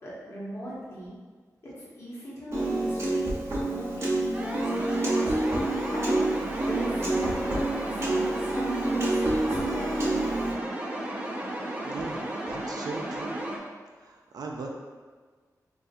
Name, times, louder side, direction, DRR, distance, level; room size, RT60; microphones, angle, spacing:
voice 1, 0.0-1.1 1.8-5.4 5.9-6.2 6.6-9.9, equal, 45° left, -8 dB, 1.2 m, -38 dB
Piano, 2.5-10.5, right 2 dB, 40° right, 0.8 m, -28 dB
sound 1, 4.3-13.6, right 1 dB, 20° right, 0.4 m, -34 dB
voice 2, 11.8-13.4 14.0-14.7, right 3 dB, 85° right, 1 dB, 0.4 m, -39 dB
3.9 x 2.4 x 2.5 m, 1.5 s
wide cardioid pair, 125°, 7 cm